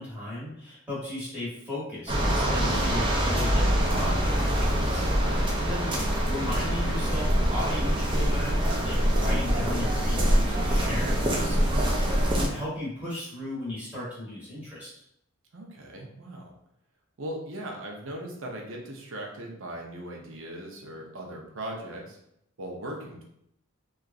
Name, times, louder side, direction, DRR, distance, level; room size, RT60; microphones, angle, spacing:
voice 1, 0.0-5.0 5.6-15.0, left 1 dB, 5° right, -9 dB, 1.0 m, -36 dB
sound 1, 2.1-12.5, equal, 20° right, 0.4 m, -24 dB
voice 2, 5.2-5.6 15.5-16.5 17.2-22.2 22.6-23.2, right 1 dB, 65° right, 0 dB, 0.6 m, -39 dB
2.9 x 2.4 x 2.4 m, 0.74 s
head